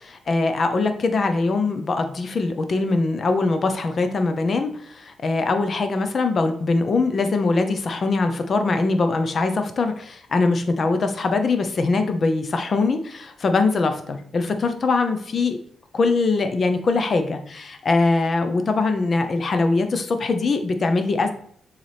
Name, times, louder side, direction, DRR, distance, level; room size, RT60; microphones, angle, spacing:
voice 1, 0.0-15.6 15.9-21.3, left 3 dB, 45° left, 7 dB, 0.7 m, -22 dB
6.9 x 4.0 x 3.4 m, 0.62 s
cardioid pair, 115°, 0 cm